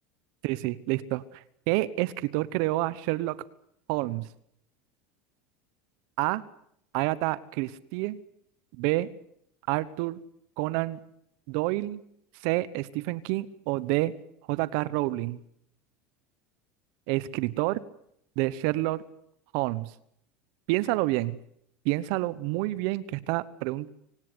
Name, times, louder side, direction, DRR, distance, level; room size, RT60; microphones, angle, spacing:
voice 1, 0.4-3.4 3.9-4.3 6.2-6.4 6.9-8.2 8.8-9.1 9.7-10.2 10.6-11.0 11.5-12.0 12.4-14.1 14.5-15.4 17.1-17.8 18.4-19.0 19.5-19.9 20.7-21.4 21.8-23.9, right 18 dB, 65° right, 18 dB, 1.1 m, -28 dB
25.0 x 18.5 x 9.8 m, 0.72 s
supercardioid pair, 115°, 8 cm